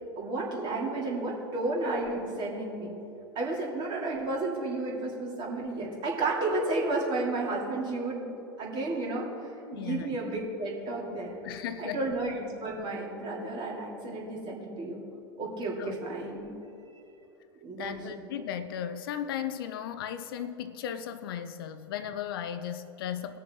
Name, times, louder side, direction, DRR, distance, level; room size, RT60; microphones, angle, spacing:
voice 1, 0.2-2.9 3.3-8.2 8.6-11.4 11.8-15.0 15.4-16.5 17.6-18.2, right 2 dB, 35° right, -3 dB, 3.0 m, -32 dB
voice 2, 9.7-10.2 11.4-12.0 15.8-16.0 17.8-23.4, left 9 dB, 60° left, 12 dB, 0.6 m, -36 dB
20.0 x 6.8 x 3.8 m, 2.9 s
figure-of-eight pair, 90°, 13 cm